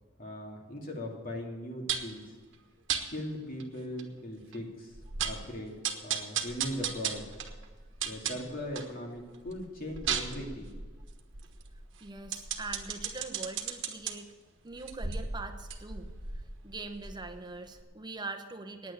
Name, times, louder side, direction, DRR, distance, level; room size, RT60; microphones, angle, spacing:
voice 1, 0.2-2.3 3.1-4.9 5.2-5.7 6.0-7.2 8.0-10.7, equal, 45° left, 0 dB, 2.5 m, -39 dB
sound 1, 1.9-2.2 2.9-3.0 3.6-3.7 4.0-4.1 4.5-4.6 4.9-5.5 5.8-8.9 9.3-14.1 14.7-17.4 17.8-17.9, right 7 dB, 65° right, 1.3 m, -35 dB
voice 2, 12.0-14.3 14.6-18.9, right 3 dB, 20° right, 6 dB, 1.0 m, -43 dB
9.6 x 9.1 x 8.7 m, 1.5 s
head